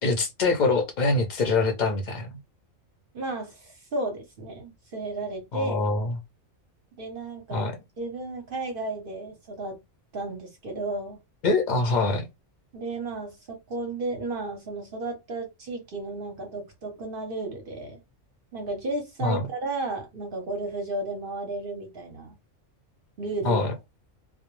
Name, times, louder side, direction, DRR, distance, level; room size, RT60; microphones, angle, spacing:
voice 1, 0.0-2.3 5.5-6.2 7.5-7.7 11.4-12.3 19.2-19.5 23.4-23.7, left 3 dB, 55° left, 0.5 m, -24 dB
voice 2, 3.1-5.8 7.0-9.8 10.1-11.2 12.7-18.0 18.5-22.4 23.2-23.7, right 2 dB, 55° right, 0.7 m, -33 dB
2.2 x 2.0 x 3.0 m
omnidirectional pair, 1.3 m